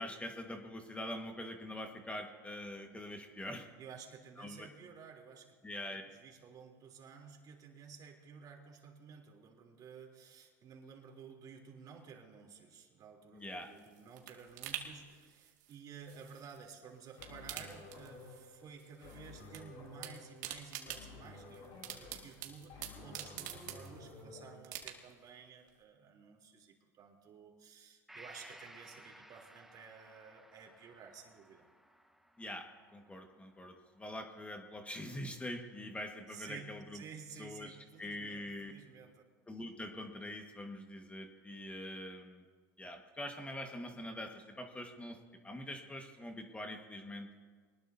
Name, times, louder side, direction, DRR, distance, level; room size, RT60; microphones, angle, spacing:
voice 1, 0.0-3.7 4.4-4.7 5.6-6.0 13.3-13.7 32.4-37.0 37.4-38.7 39.5-42.4 42.8-45.2 45.4-47.3, left 1 dB, 15° left, 4 dB, 1.6 m, -44 dB
voice 2, 3.8-5.6 5.9-31.7 36.3-39.2, right 6 dB, 45° right, 1 dB, 3.3 m, -53 dB
sound 1, 13.4-16.7 17.0-18.5 18.8-19.6 19.9-24.2 24.6-25.3 25.7-25.8, right 12 dB, 80° right, 2.1 m, -47 dB
sound 2, 17.2-24.5, left 3 dB, 65° left, 6.4 m, -53 dB
Gong, 28.1-35.7 36.1-36.2, right 1 dB, 5° right, 1.1 m, -59 dB
24.0 x 20.0 x 2.8 m, 1.5 s
hypercardioid pair, 95°, 10 cm